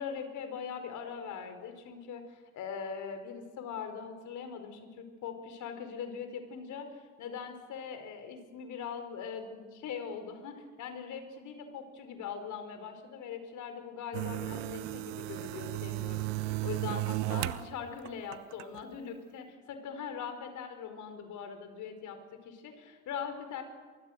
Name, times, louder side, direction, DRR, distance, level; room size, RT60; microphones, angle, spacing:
voice 1, 0.0-23.6, left 6 dB, 45° left, 7 dB, 4.8 m, -41 dB
sound 1, 14.1-17.7 18.1-18.8, right 18 dB, 60° right, 1.0 m, -34 dB
24.5 x 23.5 x 6.6 m, 1.4 s
figure-of-eight pair, 70°, 41 cm